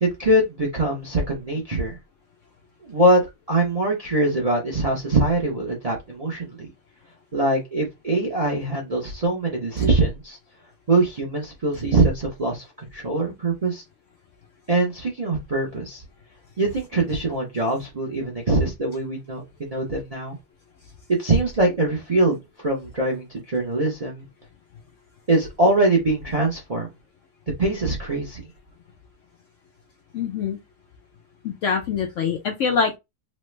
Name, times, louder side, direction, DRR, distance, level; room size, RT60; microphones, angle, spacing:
voice 1, 0.0-2.0 2.8-3.2 3.5-6.7 7.3-10.4 10.9-12.6 12.9-13.8 14.7-16.0 16.6-20.4 21.1-24.3 25.3-26.9 27.6-28.4, right 2 dB, 45° right, 0.4 m, -23 dB
voice 2, 30.1-30.6 31.4-33.0, left 6 dB, 70° left, 0.7 m, -24 dB
3.2 x 2.0 x 3.2 m
omnidirectional pair, 1.7 m